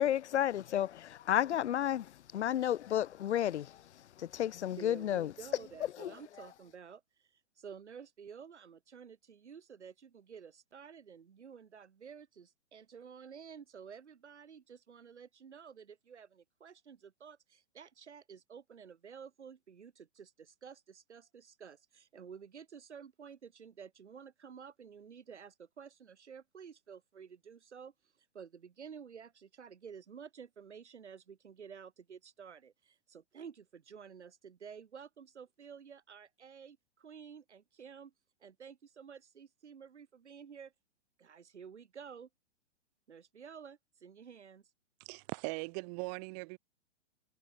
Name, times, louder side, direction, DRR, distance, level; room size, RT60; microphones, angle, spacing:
voice 1, 0.0-3.7 4.2-5.3 6.0-6.1, left 11 dB, 75° left, 0.5 m, -32 dB
voice 2, 4.8-38.1 38.4-40.7 41.2-42.3 43.1-44.7, right 7 dB, 75° right, 6.3 m, -52 dB
voice 3, 45.0-46.6, right 31 dB, 35° right, 1.6 m, -40 dB
figure-of-eight pair, 120°, 35 cm